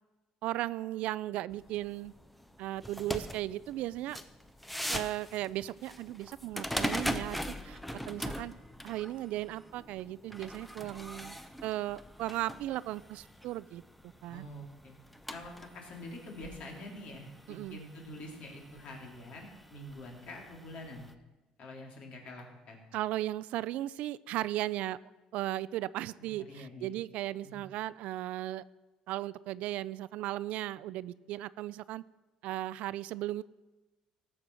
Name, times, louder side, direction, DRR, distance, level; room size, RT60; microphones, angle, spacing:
voice 1, 0.4-2.1 2.6-4.2 4.9-7.8 8.1-8.5 8.8-13.8 14.2-14.5 17.5-17.8 22.9-25.0 25.3-28.6 29.1-32.0 32.4-33.4, right 15 dB, 75° right, 18 dB, 0.4 m, -36 dB
sound 1, 1.5-21.1, equal, 5° left, 0.7 m, -42 dB
voice 2, 14.3-14.9 15.3-21.1 21.6-22.8 26.2-26.9 27.4-27.6, left 1 dB, 55° left, 0 dB, 3.5 m, -46 dB
17.5 x 7.3 x 6.2 m, 1.1 s
cardioid pair, 130°, 2 cm